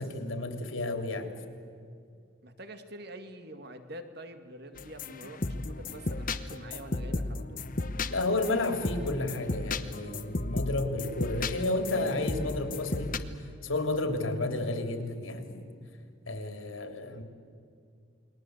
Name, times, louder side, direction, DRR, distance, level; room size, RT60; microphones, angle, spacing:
voice 1, 0.0-1.3 8.1-13.2 13.6-15.7 16.3-17.2, left 2 dB, 75° left, 6 dB, 3.1 m, -31 dB
voice 2, 2.4-7.6, right 1 dB, 55° right, 8 dB, 2.1 m, -46 dB
sound 1, 4.8-13.2, left 2 dB, 45° left, 1.1 m, -34 dB
29.5 x 22.0 x 8.0 m, 2.4 s
head